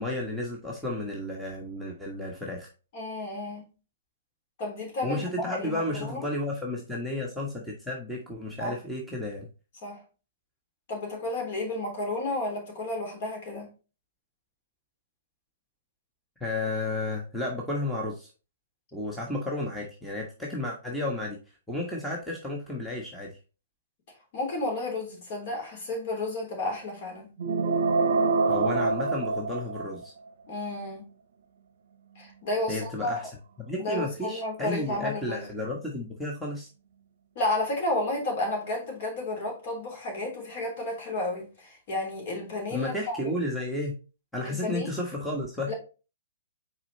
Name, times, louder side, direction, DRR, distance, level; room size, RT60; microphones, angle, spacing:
voice 1, 0.0-2.7 5.0-9.5 16.4-18.3 18.9-21.4 21.7-23.4 28.5-30.1 32.7-33.3 33.6-36.7 42.7-44.0 44.3-45.7, left 1 dB, ahead, 1.4 m, -32 dB
voice 2, 2.9-3.7 4.6-6.3 8.6-8.8 9.8-10.0 10.9-13.7 24.3-27.3 30.5-31.1 32.2-33.2 33.8-35.5 37.4-43.3 44.4-44.9 45.7-45.8, left 2 dB, 45° left, 3.4 m, -32 dB
sound 1, 27.4-30.0, right 4 dB, 60° right, 0.7 m, -25 dB
5.9 x 4.4 x 4.1 m
figure-of-eight pair, 120°, 0 cm